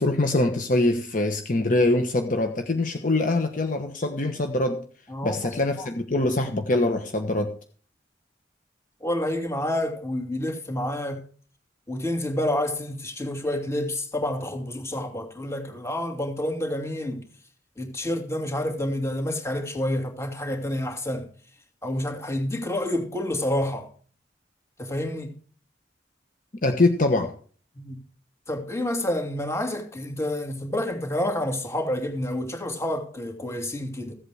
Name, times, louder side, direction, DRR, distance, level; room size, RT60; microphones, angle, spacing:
voice 1, 0.0-4.8 5.2-7.5 26.6-27.3, left 2 dB, 50° left, 1.1 m, -23 dB
voice 2, 5.1-5.5 5.8-5.9 9.0-11.2 11.9-17.2 17.8-21.3 21.8-23.9 24.8-25.3 27.7-28.0 28.5-34.1, left 1 dB, 15° left, 2.8 m, -28 dB
15.5 x 8.2 x 4.9 m
head